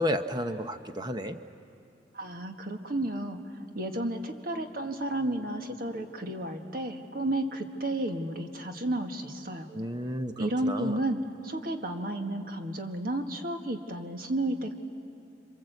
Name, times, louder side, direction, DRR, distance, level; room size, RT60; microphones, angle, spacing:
voice 1, 0.0-1.4 9.7-11.0, equal, 25° right, 8 dB, 1.0 m, -32 dB
voice 2, 2.1-3.4 3.7-9.7 10.4-14.7, right 1 dB, 50° right, 5 dB, 1.7 m, -32 dB
27.0 x 26.0 x 8.1 m, 2.7 s
head